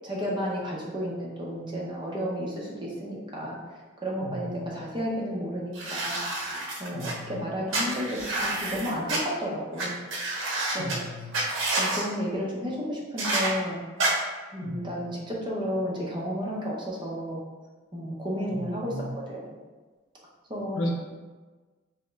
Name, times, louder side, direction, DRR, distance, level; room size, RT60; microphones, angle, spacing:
voice 1, 0.0-3.6 4.0-6.5 6.8-10.0 10.7-11.0 11.7-13.8 14.5-17.4 17.9-19.5 20.5-20.9, equal, 25° right, -4 dB, 0.7 m, -32 dB
sound 1, 5.7-7.1 7.7-9.2 9.8-9.9 10.1-11.0 11.3-12.0 13.2-13.5 14.0-14.1, right 2 dB, 70° right, 0.8 m, -28 dB
voice 2, 6.9-7.4 10.8-11.3 14.6-15.1 18.5-19.1 20.7-20.9, equal, 80° left, 0 dB, 0.7 m, -35 dB
3.5 x 3.0 x 3.3 m, 1.3 s
head